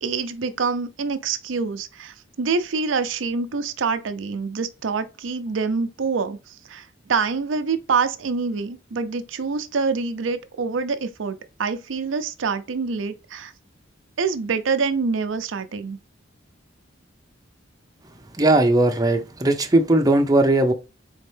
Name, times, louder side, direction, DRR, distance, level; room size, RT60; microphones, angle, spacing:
voice 1, 0.0-13.5 14.2-16.0, right 5 dB, 80° right, 0.5 m, -26 dB
voice 2, 18.4-20.7, right 2 dB, 20° right, 0.7 m, -18 dB
4.3 x 3.5 x 3.3 m
head